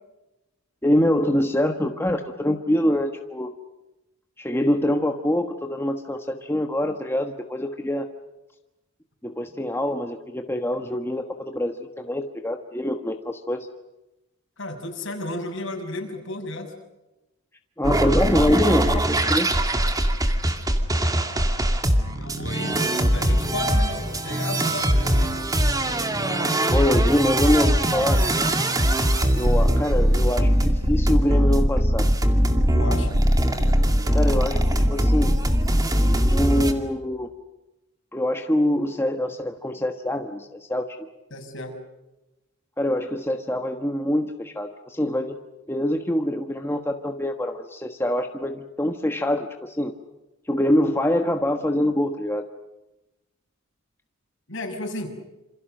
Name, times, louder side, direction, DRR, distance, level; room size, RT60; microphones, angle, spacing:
voice 1, 0.8-3.5 4.4-8.1 9.2-13.7 17.8-19.5 26.7-28.2 29.3-32.1 34.1-35.3 36.3-37.3 38.1-40.9 42.8-45.4 45.7-49.9 50.5-52.4, left 1 dB, 10° left, 4 dB, 1.3 m, -24 dB
voice 2, 14.6-16.7 22.2-22.8 23.1-25.5 32.7-33.2 41.3-41.8 54.5-55.2, left 2 dB, 60° left, 3 dB, 6.4 m, -33 dB
sound 1, 17.8-36.7, equal, 15° right, 2.3 m, -21 dB
28.0 x 27.5 x 6.6 m, 1.0 s
head